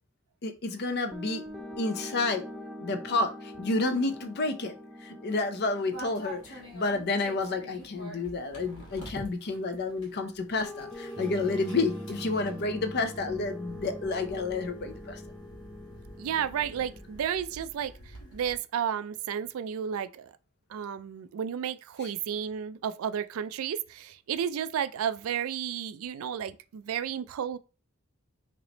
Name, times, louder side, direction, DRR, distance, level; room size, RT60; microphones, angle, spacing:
voice 1, 0.4-1.4 1.8-2.4 2.8-4.7 5.0-15.2, left 3 dB, 50° left, 0.5 m, -30 dB
sound 1, 1.1-9.2 10.6-17.2, left 1 dB, ahead, 0.5 m, -43 dB
sound 2, 5.9-18.6, right 1 dB, 75° left, 1.4 m, -48 dB
voice 2, 16.2-17.9 18.3-20.3 20.7-27.6, right 8 dB, 70° right, 0.3 m, -32 dB
3.1 x 3.0 x 3.9 m
head